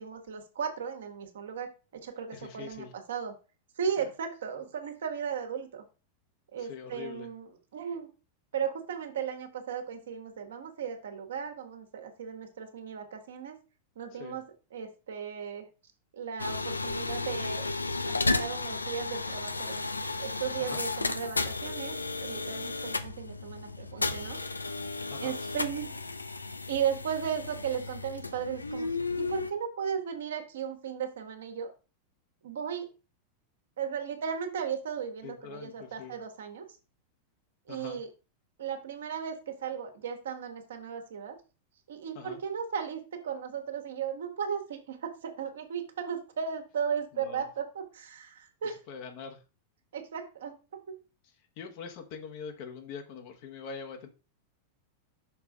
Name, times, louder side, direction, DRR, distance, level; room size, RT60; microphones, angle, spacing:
voice 1, 0.0-1.7 2.0-3.3 3.8-5.8 6.5-8.1 8.5-13.6 13.9-14.5 14.7-15.7 16.1-17.6 18.0-19.8 20.2-21.9 22.2-24.4 25.2-25.9 26.7-28.9 29.2-31.7 32.4-32.9 33.8-36.6 37.7-38.1 38.6-41.4 41.9-48.8 49.9-51.0, right 7 dB, 60° right, 5 dB, 1.6 m, -36 dB
voice 2, 2.3-2.9 6.6-7.3 14.2-14.4 20.6-20.8 25.1-25.3 35.2-36.2 37.7-38.0 42.1-42.4 47.1-47.5 48.9-49.4 51.6-54.1, left 6 dB, 45° left, 5 dB, 1.3 m, -43 dB
sound 1, 16.4-29.5, left 3 dB, 80° left, 0.6 m, -33 dB
6.0 x 4.7 x 5.3 m, 0.32 s
figure-of-eight pair, 90°, 0 cm